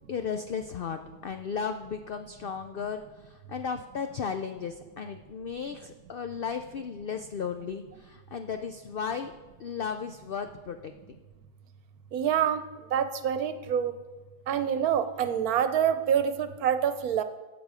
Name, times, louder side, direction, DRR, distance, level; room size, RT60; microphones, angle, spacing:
voice 1, 0.1-9.3 9.6-10.9, left 6 dB, 80° left, 7 dB, 0.5 m, -35 dB
voice 2, 12.1-12.6 12.9-13.9 14.5-17.2, right 8 dB, 80° right, 10 dB, 1.2 m, -26 dB
15.5 x 6.1 x 4.9 m, 1.3 s
omnidirectional pair, 1.6 m